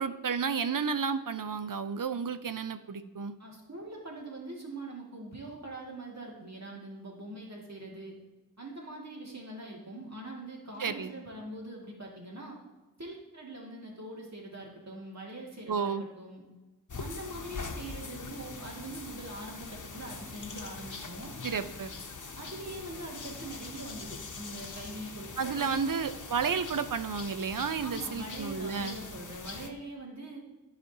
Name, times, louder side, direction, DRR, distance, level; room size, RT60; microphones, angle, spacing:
voice 1, 0.0-3.3 10.8-11.1 15.7-16.0 21.4-21.9 25.4-29.0, right 6 dB, 70° right, 11 dB, 0.6 m, -32 dB
voice 2, 3.4-8.2 8.6-12.6 13.0-16.4 17.0-21.3 22.4-25.9 27.8-30.4, right 2 dB, 50° right, -3 dB, 2.1 m, -43 dB
sound 1, 16.9-29.7, left 4 dB, 65° left, 0.8 m, -43 dB
13.5 x 5.1 x 2.8 m, 1.2 s
wide cardioid pair, 45°, 33 cm